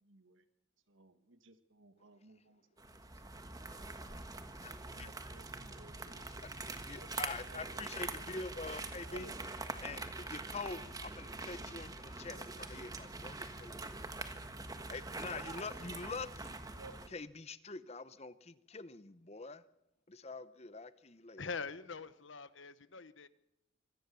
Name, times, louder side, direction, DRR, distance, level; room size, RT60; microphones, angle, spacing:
voice 1, 0.0-0.4 0.9-3.3 4.8-6.4 6.8-7.1 7.4-7.6 7.9-8.3 8.6-8.7 9.1-9.3 16.7-16.9, right 3 dB, 75° right, 10 dB, 1.6 m, -58 dB
sound 1, 2.8-17.1, right 3 dB, 20° right, 1.4 m, -44 dB
voice 2, 4.6-5.1 6.4-6.5 6.8-9.3 9.8-13.8 14.9-16.6 17.1-19.6 20.1-21.4, left 3 dB, 30° left, 15 dB, 0.8 m, -45 dB
voice 3, 21.4-23.3, left 4 dB, 65° left, 14 dB, 1.1 m, -43 dB
25.0 x 18.0 x 6.9 m, 0.85 s
head